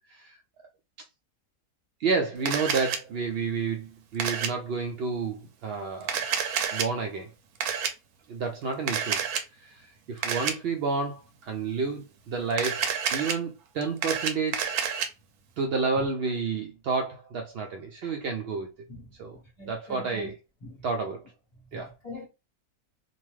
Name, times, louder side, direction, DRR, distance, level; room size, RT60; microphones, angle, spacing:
voice 1, 2.0-6.2 6.7-7.3 8.3-9.2 9.6-14.7 15.6-18.7 19.2-19.4 19.7-20.4 20.8-21.2 21.7-21.9, right 4 dB, 70° right, 0.5 m, -30 dB
Camera, 2.5-3.0 4.2-4.5 6.0-6.9 7.6-7.9 8.9-9.4 10.2-10.5 12.5-13.3 13.8-15.1, right 7 dB, 85° right, 1.1 m, -28 dB
voice 2, 18.9-20.3 20.6-20.8 21.7-22.3, left 1 dB, 30° left, 0.9 m, -44 dB
2.7 x 2.2 x 3.1 m
omnidirectional pair, 1.6 m